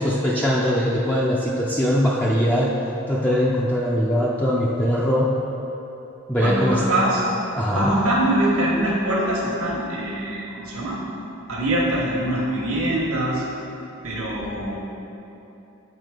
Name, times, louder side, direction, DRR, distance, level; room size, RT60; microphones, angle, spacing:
voice 1, 0.0-2.8 3.1-5.3 6.3-6.8 7.6-7.9, equal, 5° left, -5 dB, 0.4 m, -21 dB
voice 2, 6.4-7.2 7.7-11.0 11.5-13.4 14.0-14.8, right 1 dB, 80° right, -5 dB, 1.3 m, -23 dB
8.2 x 4.2 x 4.8 m, 3.0 s
head